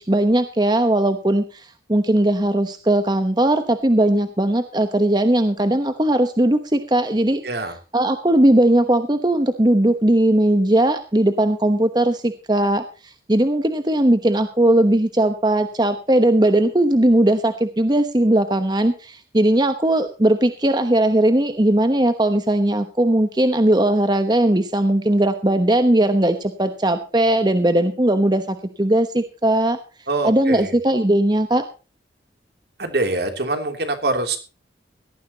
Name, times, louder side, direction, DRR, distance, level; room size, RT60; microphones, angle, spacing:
voice 1, 0.0-7.4 7.9-29.8 30.2-31.6, right 1 dB, 25° right, 9 dB, 1.0 m, -18 dB
voice 2, 7.4-7.7 30.1-30.7 32.8-34.4, right 2 dB, 65° right, 6 dB, 3.0 m, -24 dB
18.0 x 14.0 x 2.9 m, 0.34 s
head